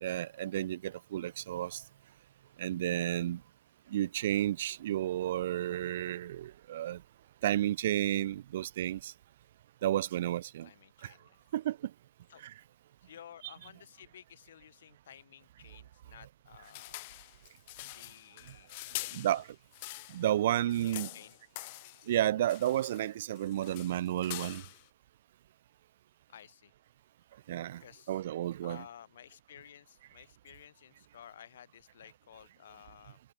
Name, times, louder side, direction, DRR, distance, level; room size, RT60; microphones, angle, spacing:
voice 1, 0.0-1.8 2.6-3.4 3.9-7.0 7.4-9.1 9.8-10.7 11.5-11.8 12.4-12.5 19.1-19.5 20.1-21.1 22.1-24.6 27.5-27.8 28.1-28.8, right 12 dB, 45° right, 0.8 m, -31 dB
voice 2, 10.6-11.4 12.3-12.4 13.0-17.1 17.9-19.4 20.5-21.4 26.3-26.7 27.8-28.2 28.6-33.2, left 10 dB, 55° left, 7.7 m, -54 dB
sound 1, 16.6-20.3 20.6-22.1 22.5-23.1 23.4-24.9, left 22 dB, 35° left, 0.8 m, -44 dB
hypercardioid pair, 145°, 0 cm